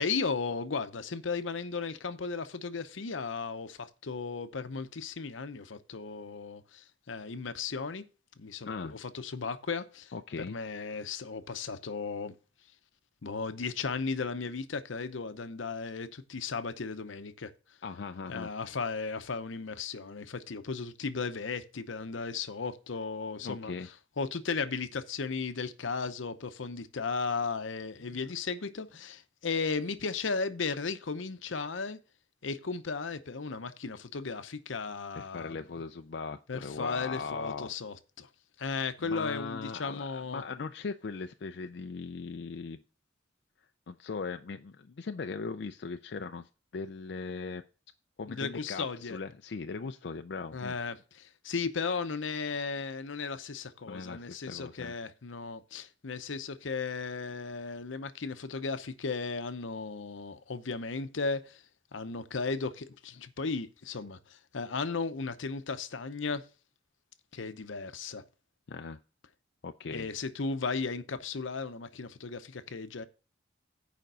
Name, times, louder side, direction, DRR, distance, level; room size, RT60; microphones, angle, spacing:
voice 1, 0.0-8.0 8.4-12.3 13.2-17.5 18.3-23.7 24.2-32.0 32.4-35.6 36.5-38.3 38.6-40.4 48.3-49.2 50.5-61.6 61.9-66.4 67.3-68.2 69.9-73.0, left 4 dB, 85° left, 0.8 m, -35 dB
voice 2, 8.6-9.0 10.1-10.6 17.8-18.5 23.4-23.9 28.1-28.2 35.1-37.7 39.0-42.8 43.9-47.6 48.2-50.8 53.9-54.9 68.7-69.0 69.6-70.1, left 4 dB, 60° left, 0.4 m, -39 dB
9.2 x 5.1 x 5.5 m
head